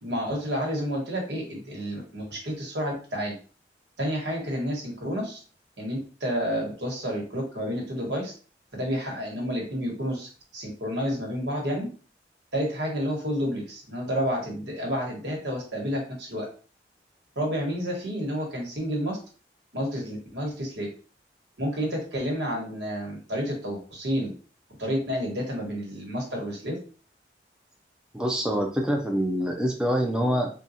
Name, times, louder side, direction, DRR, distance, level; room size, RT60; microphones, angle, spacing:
voice 1, 0.0-3.3 4.0-5.4 5.8-8.3 8.7-11.9 12.5-16.5 17.3-19.2 19.7-20.9 21.6-24.3 24.8-26.8, equal, 90° right, -1 dB, 1.3 m, -30 dB
voice 2, 28.1-30.5, equal, 5° right, 1 dB, 0.4 m, -25 dB
3.8 x 2.3 x 2.7 m, 0.38 s
head